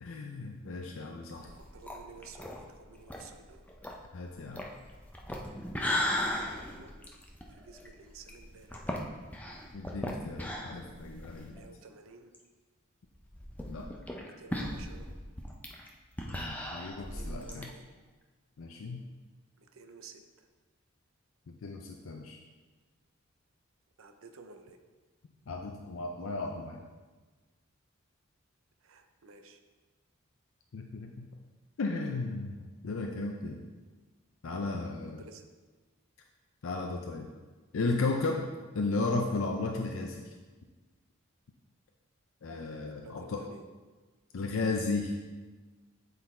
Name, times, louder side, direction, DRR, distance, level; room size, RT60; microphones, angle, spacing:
voice 1, 0.0-1.5 4.1-4.6 9.7-11.7 13.7-13.9 16.3-17.7 18.6-19.0 21.5-22.4 25.5-26.8 30.7-31.3 31.8-33.6 34.4-35.2 36.6-37.3 37.7-38.4 38.7-40.3 42.4-43.4 44.3-45.2, left 3 dB, 75° left, 2 dB, 0.5 m, -34 dB
sound 1, 1.4-11.6 11.9-12.0 12.3-12.4 13.1-17.6, left 1 dB, 5° left, 0.5 m, -37 dB
voice 2, 1.4-3.6 5.9-6.9 7.5-9.0 11.5-12.4 14.2-15.1 16.9-17.9 19.6-20.5 24.0-24.8 28.8-29.6 35.2-35.5 42.8-43.6, right 4 dB, 80° right, 6 dB, 0.6 m, -53 dB
8.0 x 3.9 x 4.3 m, 1.3 s
head